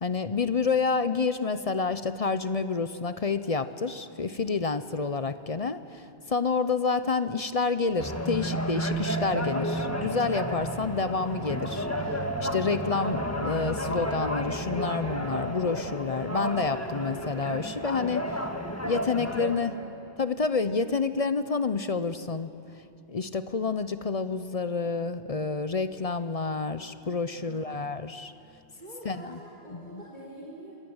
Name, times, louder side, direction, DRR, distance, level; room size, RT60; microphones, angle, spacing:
voice 1, 0.0-18.4 18.8-19.7 20.2-22.5 23.1-28.3 29.0-29.4 29.7-30.0, left 4 dB, 40° left, 12 dB, 0.7 m, -29 dB
sound 1, 8.0-19.6, equal, 15° left, 1.5 m, -31 dB
voice 2, 19.5-20.0 27.4-27.9 28.7-30.7, right 2 dB, 45° right, -5 dB, 3.7 m, -46 dB
27.0 x 20.5 x 8.0 m, 2.7 s
omnidirectional pair, 1.1 m